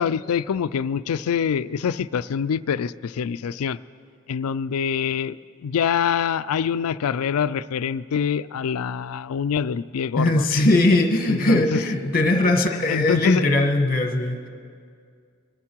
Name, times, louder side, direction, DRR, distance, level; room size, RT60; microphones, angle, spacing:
voice 1, 0.0-3.8 4.3-5.4 5.6-10.4 11.3-11.8 12.9-13.5, left 7 dB, 70° left, 16 dB, 0.4 m, -25 dB
voice 2, 10.2-14.4, left 2 dB, 40° left, 5 dB, 1.4 m, -20 dB
25.0 x 11.0 x 4.6 m, 2.2 s
head